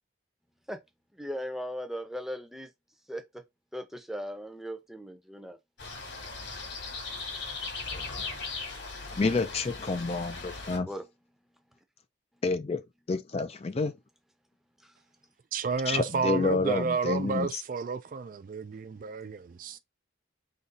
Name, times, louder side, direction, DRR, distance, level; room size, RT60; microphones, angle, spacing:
voice 1, 1.1-2.7 3.1-3.4 3.7-5.6 10.8-11.1 11.7-11.8 12.3-12.4 14.8-15.0, equal, ahead, 0.7 m, -38 dB
sound 1, 5.8-10.8, left 4 dB, 60° left, 1.6 m, -38 dB
voice 2, 9.2-10.9 12.4-12.8 13.1-13.9 15.9-17.6, left 3 dB, 30° left, 0.4 m, -29 dB
voice 3, 15.5-19.8, right 5 dB, 45° right, 0.3 m, -31 dB
3.9 x 3.0 x 4.1 m
head